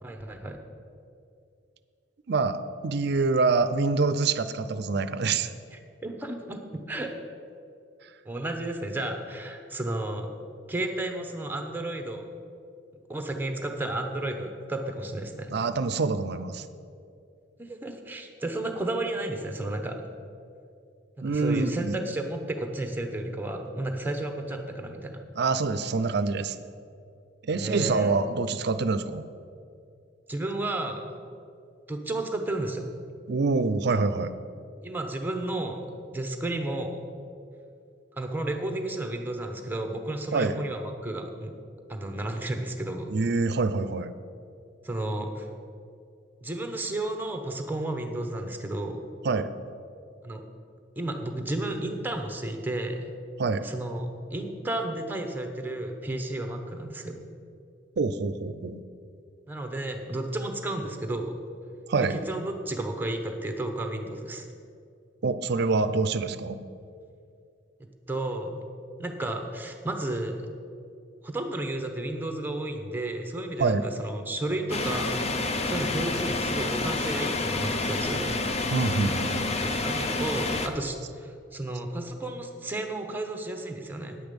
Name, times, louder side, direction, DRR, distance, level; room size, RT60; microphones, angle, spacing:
voice 1, 0.0-0.6 5.7-6.6 6.9-7.1 8.2-10.3 10.7-12.2 13.1-15.5 17.6-20.0 21.2-25.2 27.5-28.1 30.3-31.1 31.9-32.9 34.8-35.9 36.1-37.0 38.1-41.5 41.9-43.1 44.8-45.5 46.4-49.0 50.2-50.4 51.0-53.1 53.6-57.2 59.5-61.4 62.1-64.5 68.1-68.6 69.0-70.5 71.2-75.4 75.6-78.3 79.8-84.2, right 1 dB, 10° right, 5 dB, 0.9 m, -32 dB
voice 2, 2.3-5.5 15.5-16.6 21.2-22.0 25.4-26.6 27.4-29.2 33.3-34.3 40.3-40.5 43.1-44.1 49.2-49.5 53.4-53.7 58.0-58.8 61.9-62.2 65.2-66.6 73.6-73.9 78.7-79.5, right 4 dB, 60° right, 12 dB, 0.5 m, -26 dB
sound 1, 74.7-80.7, left 2 dB, 35° left, 0.6 m, -28 dB
9.8 x 8.1 x 5.2 m, 2.4 s
head